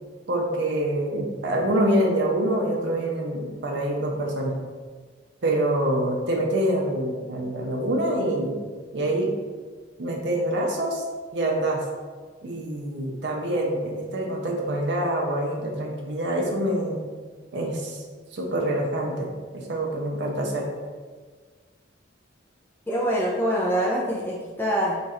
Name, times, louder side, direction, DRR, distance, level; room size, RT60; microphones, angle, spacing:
voice 1, 0.3-4.5 5.4-8.6 8.9-9.3 10.0-11.0 11.3-11.8 12.4-17.0 17.5-18.0 18.3-19.3 19.5-20.6, right 1 dB, 60° right, 0 dB, 0.6 m, -25 dB
voice 2, 22.9-25.0, equal, 10° left, -6 dB, 0.5 m, -24 dB
2.9 x 2.4 x 4.1 m, 1.5 s
head